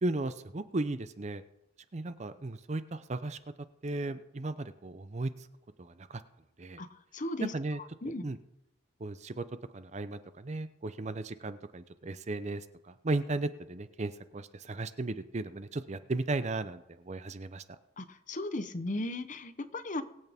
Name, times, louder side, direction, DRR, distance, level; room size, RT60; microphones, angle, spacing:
voice 1, 0.0-1.4 1.9-3.4 3.8-5.3 5.8-6.2 6.6-6.8 7.4-7.8 8.0-8.4 9.0-9.5 9.7-17.6, right 2 dB, 35° right, 12 dB, 0.6 m, -35 dB
voice 2, 6.8-7.5 8.0-8.3 18.0-20.0, left 2 dB, 40° left, 11 dB, 0.8 m, -36 dB
20.5 x 8.2 x 3.6 m, 0.87 s
head